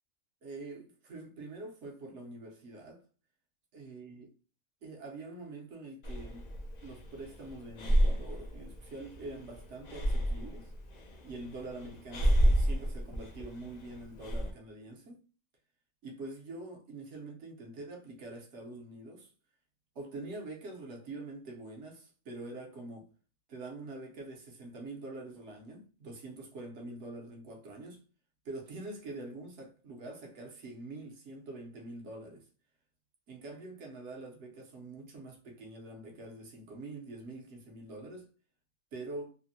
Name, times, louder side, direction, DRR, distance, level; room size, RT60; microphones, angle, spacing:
voice 1, 0.4-3.0 3.7-4.3 4.8-6.5 6.8-10.7 11.2-15.2 16.0-19.3 19.9-23.1 23.5-28.0 28.4-32.5 33.3-38.3 38.9-39.4, right 2 dB, 60° right, 0.9 m, -45 dB
Breathing, 6.0-14.5, equal, 85° left, 0.3 m, -31 dB
3.3 x 2.1 x 2.6 m
omnidirectional pair, 1.5 m